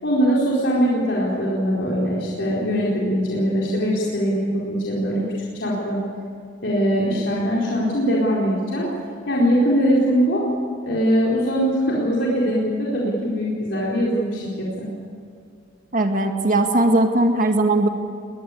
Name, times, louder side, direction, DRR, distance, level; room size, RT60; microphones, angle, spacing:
voice 1, 0.0-5.2 5.5-6.0 6.6-8.9 9.3-10.4 10.8-14.9, equal, 70° left, -5 dB, 4.4 m, -21 dB
voice 2, 15.9-17.9, right 2 dB, 45° right, 4 dB, 1.9 m, -19 dB
21.5 x 21.0 x 8.5 m, 2.3 s
head